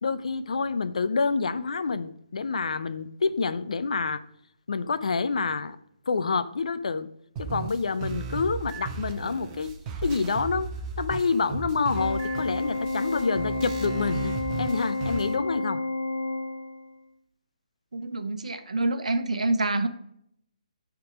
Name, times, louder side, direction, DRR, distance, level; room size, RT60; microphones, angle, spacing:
voice 1, 0.0-4.2 4.7-5.8 6.1-7.1 7.4-9.7 10.0-10.7 11.0-15.8, left 4 dB, 65° left, 13 dB, 0.5 m, -27 dB
sound 1, 7.4-15.4, right 5 dB, 25° right, 0.8 m, -36 dB
Organ, 12.0-17.0, left 2 dB, 85° left, 1.4 m, -30 dB
voice 2, 17.9-19.9, right 2 dB, 75° right, 8 dB, 0.9 m, -27 dB
10.5 x 3.7 x 4.8 m, 0.72 s
figure-of-eight pair, 140°, 4 cm